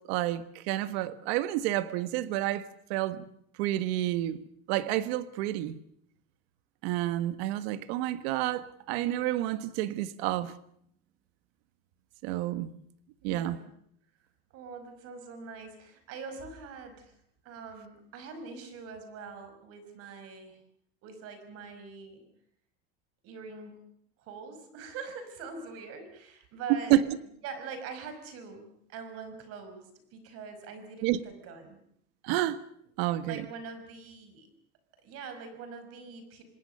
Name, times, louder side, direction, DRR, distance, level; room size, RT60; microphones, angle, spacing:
voice 1, 0.0-3.2 3.6-4.4 4.7-5.8 6.8-10.5 12.2-12.7 13.2-13.6 26.9-27.0 31.0-31.2 32.2-32.6 33.0-33.5, right 14 dB, 80° right, 14 dB, 1.5 m, -29 dB
voice 2, 13.2-13.6 14.5-17.2 17.4-20.6 21.0-22.2 23.2-23.7 24.2-27.0 27.4-31.8 33.2-34.5 35.0-36.4, right 5 dB, 50° right, 8 dB, 5.4 m, -43 dB
26.5 x 20.0 x 6.7 m, 0.70 s
cardioid pair, 160°, 31 cm